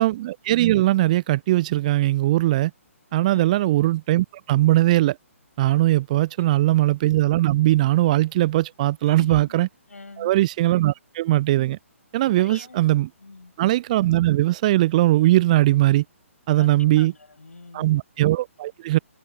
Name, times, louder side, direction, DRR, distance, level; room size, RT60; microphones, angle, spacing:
voice 1, 0.0-2.7 3.1-5.2 5.6-9.7 10.2-11.8 12.1-13.1 13.6-16.0 16.5-17.1 17.7-19.0, right 16 dB, 30° right, 0.5 m, -20 dB
voice 2, 3.3-3.6 6.2-6.7 9.0-9.5 9.9-10.3 12.4-12.8 13.2-13.5 16.6-17.9, left 3 dB, 75° left, 7.6 m, -44 dB
figure-of-eight pair, 130°, 8 cm